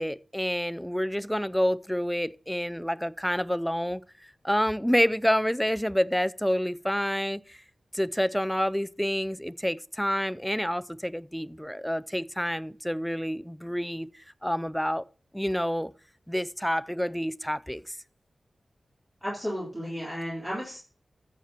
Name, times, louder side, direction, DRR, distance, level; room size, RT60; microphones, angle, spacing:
voice 1, 0.0-4.0 4.4-7.6 7.9-15.0 15.3-15.9 16.3-18.0, equal, 5° left, 0.3 m, -28 dB
voice 2, 19.2-20.8, equal, 15° right, 3.5 m, -33 dB
14.0 x 7.4 x 2.9 m
cardioid pair, 60°, 0 cm